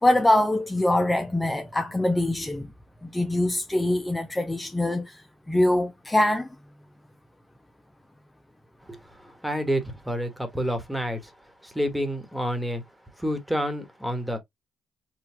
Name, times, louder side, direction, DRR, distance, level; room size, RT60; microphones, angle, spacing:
voice 1, 0.0-2.7 3.0-6.5, left 1 dB, 10° left, 0.6 m, -23 dB
voice 2, 9.2-11.3 11.6-12.8 13.2-14.4, equal, 5° right, 1.5 m, -29 dB
4.8 x 2.6 x 3.4 m
cardioid pair, 90°, 0 cm